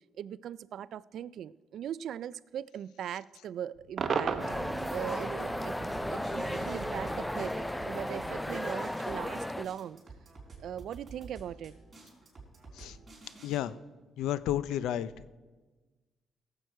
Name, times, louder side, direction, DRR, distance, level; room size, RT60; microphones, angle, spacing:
voice 1, 0.2-4.4 4.9-5.7 6.1-10.0 10.6-11.7, right 10 dB, 70° right, 19 dB, 0.3 m, -40 dB
Cheering / Crowd / Fireworks, 4.0-9.3, right 5 dB, 50° right, 0.9 m, -38 dB
sound 1, 4.4-9.6, left 1 dB, 5° left, 0.3 m, -35 dB
sound 2, 4.5-13.6, right 3 dB, 30° right, 4.1 m, -51 dB
voice 2, 13.4-13.7 14.2-15.1, left 11 dB, 90° left, 16 dB, 0.4 m, -31 dB
17.0 x 7.8 x 4.6 m, 1.3 s
cardioid pair, 90°, 0 cm